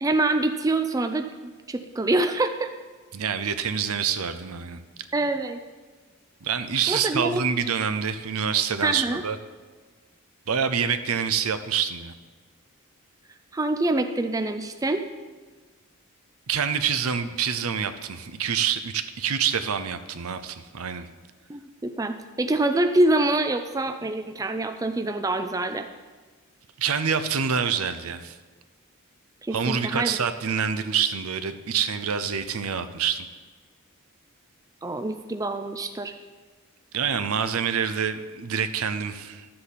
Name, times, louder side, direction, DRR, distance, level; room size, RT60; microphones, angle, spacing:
voice 1, 0.0-2.7 5.1-5.6 6.9-7.4 8.8-9.2 13.5-15.0 21.5-25.9 29.4-30.2 34.8-36.1, right 2 dB, 15° right, 8 dB, 0.4 m, -25 dB
voice 2, 3.1-4.8 6.4-9.4 10.5-12.1 16.5-21.1 26.8-28.4 29.5-33.3 36.9-39.5, right 7 dB, 85° right, 10 dB, 0.6 m, -26 dB
12.5 x 7.6 x 4.2 m, 1.4 s
head